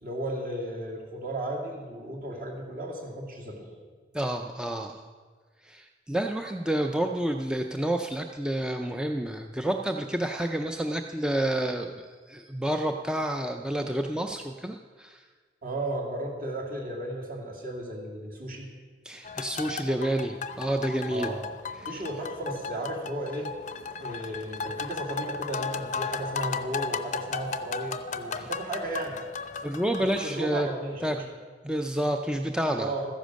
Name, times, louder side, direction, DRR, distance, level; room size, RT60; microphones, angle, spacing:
voice 1, 0.0-3.7 15.6-18.7 21.1-21.4 21.9-23.5 24.0-29.2 30.0-31.2 32.8-33.1, right 1 dB, 50° right, 0 dB, 2.5 m, -34 dB
voice 2, 4.1-5.1 5.6-15.2 19.0-21.3 21.9-22.0 28.4-28.5 29.6-30.7 31.0-31.2 31.6-32.9, right 1 dB, 5° right, 4 dB, 0.4 m, -29 dB
sound 1, 19.2-30.3, left 5 dB, 40° left, 0.6 m, -35 dB
14.0 x 10.5 x 6.4 m, 1.5 s
head